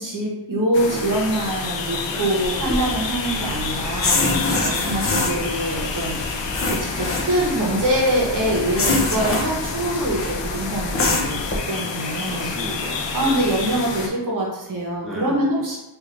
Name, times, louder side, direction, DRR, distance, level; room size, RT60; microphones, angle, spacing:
voice 1, 0.0-4.2 4.6-6.1 6.6-11.4 11.7-12.5 13.1-15.8, right 1 dB, 45° right, -3 dB, 0.9 m, -24 dB
sound 1, 0.7-14.1, left 4 dB, 90° left, 0.6 m, -29 dB
voice 2, 0.9-1.5 2.1-2.3 4.1-4.8 12.3-13.5 15.0-15.4, equal, ahead, -6 dB, 0.8 m, -34 dB
sound 2, 2.4-11.6, left 2 dB, 35° left, 0.5 m, -26 dB
3.3 x 2.5 x 3.7 m, 0.96 s
wide cardioid pair, 145°, 43 cm